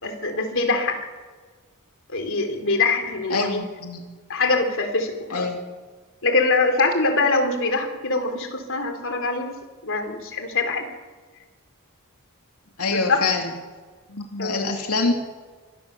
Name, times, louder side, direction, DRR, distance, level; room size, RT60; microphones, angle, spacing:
voice 1, 0.0-1.0 2.1-3.6 4.3-5.5 6.2-9.6 9.8-10.9 12.9-13.2 14.4-14.6, left 3 dB, 65° left, 6 dB, 3.6 m, -23 dB
voice 2, 3.3-4.0 5.3-5.6 12.8-13.5 14.1-15.1, left 3 dB, 90° left, 2 dB, 2.5 m, -25 dB
26.0 x 19.5 x 6.8 m, 1.4 s
head